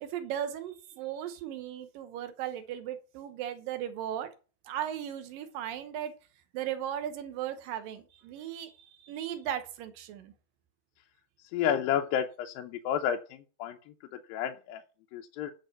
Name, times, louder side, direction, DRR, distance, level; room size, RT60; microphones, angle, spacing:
voice 1, 0.0-4.3 4.7-6.1 6.5-10.3, right 10 dB, 75° right, 9 dB, 2.5 m, -37 dB
voice 2, 11.5-13.2 13.6-13.8 14.3-14.8 15.1-15.5, left 9 dB, 80° left, 3 dB, 2.4 m, -30 dB
9.1 x 5.4 x 6.5 m, 0.35 s
omnidirectional pair, 4.4 m